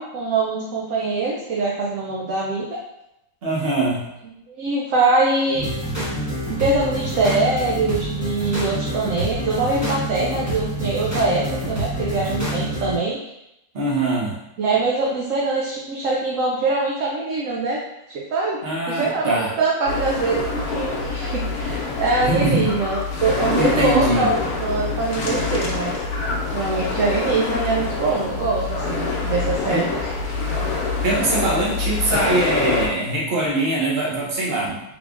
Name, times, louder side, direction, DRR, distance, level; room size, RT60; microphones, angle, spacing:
voice 1, 0.0-2.8 4.5-5.7 6.5-13.2 14.6-17.8 18.1-18.6 18.9-26.0 26.5-30.2, right 3 dB, 65° right, -3 dB, 0.8 m, -23 dB
voice 2, 3.4-4.1 13.7-14.4 18.6-19.5 22.2-22.7 23.5-24.3 29.7-29.9 31.0-34.8, right 2 dB, 45° right, -4 dB, 1.0 m, -22 dB
sound 1, 5.5-13.0, equal, 15° right, 0.7 m, -27 dB
sound 2, 19.9-32.9, left 3 dB, 65° left, 1.2 m, -26 dB
3.5 x 3.4 x 2.4 m, 0.87 s
omnidirectional pair, 1.7 m